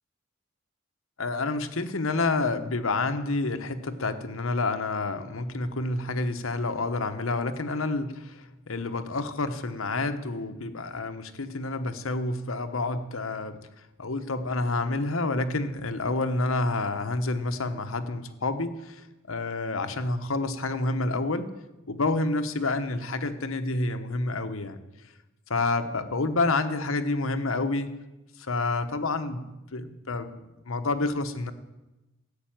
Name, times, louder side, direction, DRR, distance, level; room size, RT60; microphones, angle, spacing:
voice 1, 1.2-21.5 21.9-24.8 25.5-28.0 28.4-31.5, left 3 dB, 80° left, 8 dB, 1.1 m, -29 dB
13.5 x 8.2 x 9.1 m, 1.0 s
head